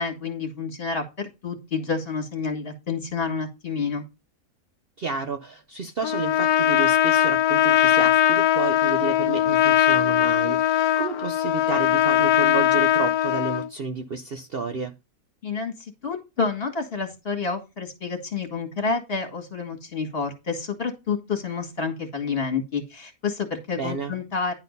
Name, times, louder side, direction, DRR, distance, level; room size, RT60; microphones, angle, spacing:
voice 1, 0.0-4.0 15.4-24.5, left 5 dB, 40° left, 2.2 m, -29 dB
voice 2, 5.0-14.9 23.8-24.1, right 5 dB, 50° right, 0.8 m, -31 dB
Trumpet, 6.0-13.7, left 11 dB, 85° left, 1.1 m, -20 dB
10.5 x 4.1 x 5.3 m
omnidirectional pair, 1.5 m